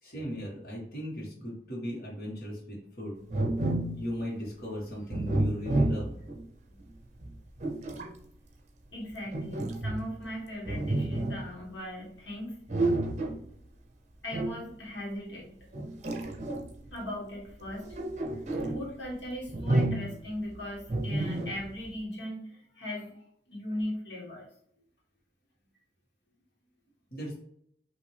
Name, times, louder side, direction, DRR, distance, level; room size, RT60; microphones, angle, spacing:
voice 1, 0.0-3.2 3.9-6.2 27.1-27.4, equal, 55° left, -4 dB, 1.5 m, -37 dB
sound 1, 3.3-4.1 5.1-6.4 7.2-8.1 9.3-10.3 10.7-11.5 12.7-13.5 14.3-14.6 15.7-16.9 17.7-18.9 19.5-20.3 20.9-21.8, right 2 dB, 40° right, 0.6 m, -30 dB
voice 2, 8.9-12.6 14.2-15.7 16.9-18.0 18.3-23.2 23.5-24.5, left 1 dB, 90° left, -4 dB, 1.6 m, -38 dB
5.7 x 2.8 x 3.3 m, 0.68 s
head